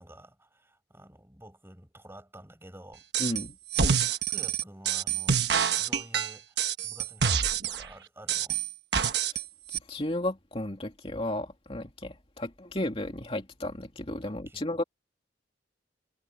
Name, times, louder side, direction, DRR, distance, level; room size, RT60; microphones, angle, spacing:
voice 1, 0.0-3.0 3.8-8.6 14.2-14.7, right 1 dB, 15° right, 7.5 m, -51 dB
sound 1, 3.1-3.4 3.7-7.8 8.3-9.4 9.7-9.8, right 7 dB, 60° right, 1.3 m, -27 dB
voice 2, 3.2-3.6 9.3-9.4 9.7-14.8, left 1 dB, 30° left, 2.8 m, -34 dB
head